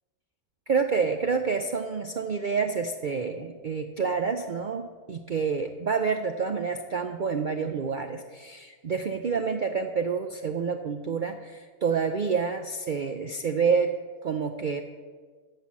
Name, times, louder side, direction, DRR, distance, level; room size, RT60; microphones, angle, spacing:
voice 1, 0.7-13.9 14.2-14.8, right 5 dB, 80° right, 5 dB, 0.4 m, -28 dB
15.0 x 5.6 x 7.5 m, 1.5 s
omnidirectional pair, 1.6 m